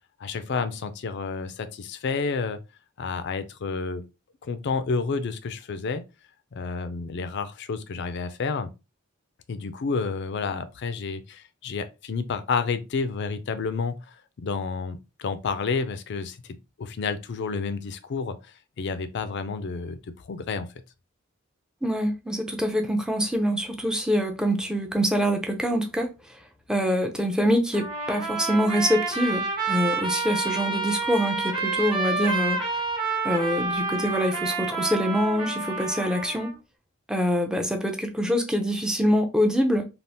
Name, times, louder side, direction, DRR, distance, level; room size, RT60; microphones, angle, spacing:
voice 1, 0.2-2.6 3.0-4.1 4.4-6.0 6.5-8.7 9.5-16.4 16.8-18.4 18.8-20.0 20.2-20.7, left 4 dB, 55° left, 0.4 m, -30 dB
voice 2, 21.8-26.1 26.7-32.8 33.2-36.5 37.1-39.8, equal, 5° right, 0.5 m, -25 dB
Trumpet, 27.7-36.5, right 4 dB, 25° right, 1.1 m, -29 dB
3.4 x 2.4 x 2.7 m
head